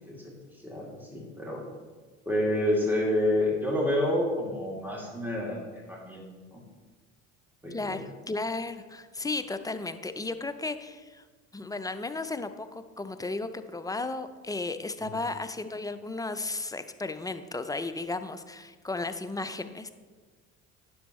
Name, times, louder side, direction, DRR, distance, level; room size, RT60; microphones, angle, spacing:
voice 1, 0.6-1.6 2.3-6.2 6.5-6.6 7.6-8.0 15.0-15.1, left 1 dB, 5° right, -3 dB, 2.5 m, -29 dB
voice 2, 7.7-11.2 11.5-19.9, left 3 dB, 10° left, 10 dB, 0.4 m, -34 dB
10.0 x 6.9 x 3.1 m, 1.4 s
hypercardioid pair, 65°, 37 cm